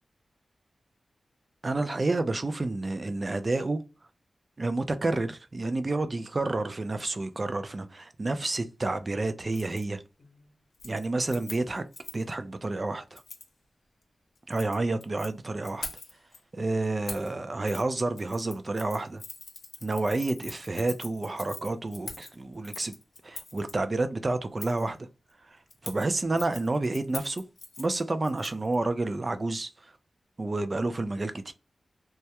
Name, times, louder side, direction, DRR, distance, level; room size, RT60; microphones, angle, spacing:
voice 1, 1.6-3.8 4.6-10.0 10.8-11.8 12.1-13.2 14.5-15.9 16.5-19.2 19.8-23.0 23.2-25.1 25.5-27.4 27.8-29.7 30.4-31.5, right 2 dB, 35° right, 0.3 m, -29 dB
Keys jangling, 9.5-9.8 10.2-10.5 10.7-12.3 13.2-13.5 14.4-15.3 15.6-16.4 17.1-17.3 17.7-17.8 18.2-23.7 24.6-24.9 25.7-28.8 29.0-29.1, left 3 dB, 80° left, 0.7 m, -43 dB
2.2 x 2.0 x 2.8 m
wide cardioid pair, 90°, 0 cm